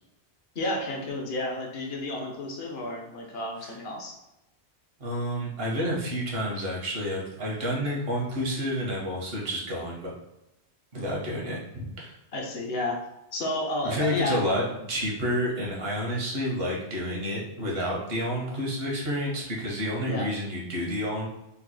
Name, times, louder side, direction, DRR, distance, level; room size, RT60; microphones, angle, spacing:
voice 1, 0.6-4.1 12.3-13.0 13.3-14.4 20.0-20.3, left 1 dB, 65° left, 0 dB, 0.9 m, -31 dB
voice 2, 5.0-10.1 10.9-12.1 13.8-21.3, equal, 60° right, -3 dB, 1.2 m, -29 dB
3.9 x 2.9 x 2.2 m, 0.92 s
omnidirectional pair, 1.2 m